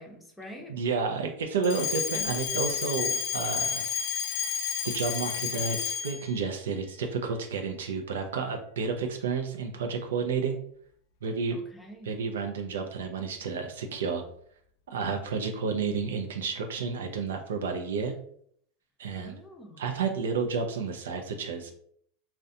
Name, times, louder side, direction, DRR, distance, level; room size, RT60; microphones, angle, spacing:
voice 1, 0.0-0.7 2.1-2.4 11.5-12.1 19.1-20.0, equal, 5° left, 0 dB, 0.6 m, -46 dB
voice 2, 0.7-3.9 4.8-10.6 11.2-11.6 12.0-14.2 14.9-18.1 19.0-19.4 19.8-21.8, right 5 dB, 90° right, 4 dB, 0.4 m, -31 dB
Alarm, 1.6-6.3, left 8 dB, 60° left, 0.4 m, -31 dB
2.4 x 2.1 x 2.6 m, 0.64 s
hypercardioid pair, 110°, 0 cm